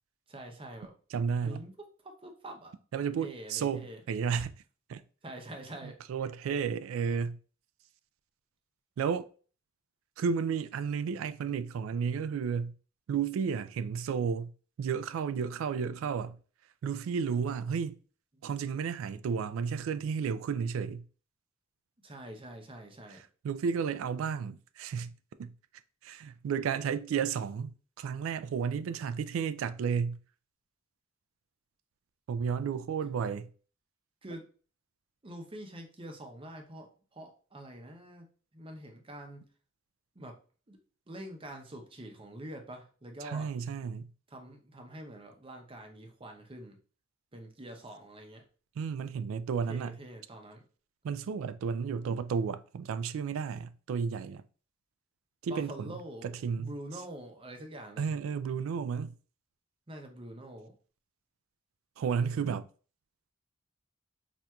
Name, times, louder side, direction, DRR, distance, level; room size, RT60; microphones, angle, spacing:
voice 1, 0.3-1.0 1.4-1.7 2.0-2.7 3.2-4.0 5.2-6.0 18.3-18.4 22.0-23.2 34.2-34.5 35.2-38.3 38.5-39.4 40.2-40.4 40.7-40.8 41.1-43.5 44.3-46.8 47.3-48.4 49.7-50.6 55.5-58.1 59.9-60.7, right 1 dB, 25° right, 0.6 m, -45 dB
voice 2, 1.1-1.6 2.9-4.5 4.9-5.0 5.8-7.4 9.0-9.3 10.2-12.7 13.1-14.5 14.8-16.4 16.8-18.0 18.4-21.0 23.4-25.1 25.4-25.5 26.0-27.7 28.0-30.2 32.3-33.5 43.2-44.1 48.8-50.0 51.0-54.4 55.4-56.0 56.2-56.7 58.0-59.1 62.0-62.6, right 6 dB, 90° right, 0.3 m, -32 dB
4.2 x 2.5 x 2.2 m
head